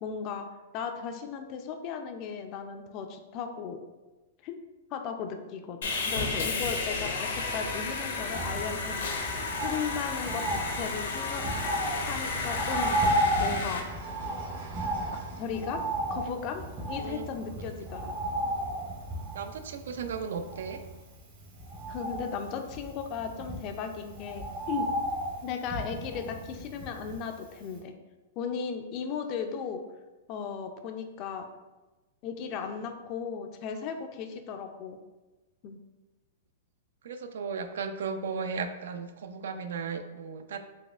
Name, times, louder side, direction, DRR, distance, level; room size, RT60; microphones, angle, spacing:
voice 1, 0.0-0.5 0.7-3.8 4.4-4.6 4.9-9.2 9.6-11.4 12.1-13.0 13.4-13.9 15.4-15.8 16.1-16.6 16.9-18.2 21.9-24.9 25.4-27.9 28.4-29.8 30.3-31.5 32.2-35.0 35.6-35.8, left 6 dB, 35° left, 6 dB, 0.3 m, -36 dB
Sawing, 5.8-13.8, left 4 dB, 75° left, 0.6 m, -32 dB
Bird, 8.3-27.4 27.8-27.9, right 1 dB, 30° right, 0.7 m, -34 dB
sound 1, 10.2-17.0, right 2 dB, 55° right, 1.0 m, -51 dB
voice 2, 19.3-20.8 37.0-40.6, right 5 dB, 80° right, 9 dB, 0.3 m, -35 dB
4.0 x 3.0 x 2.3 m, 1.1 s
hypercardioid pair, 160°, 0 cm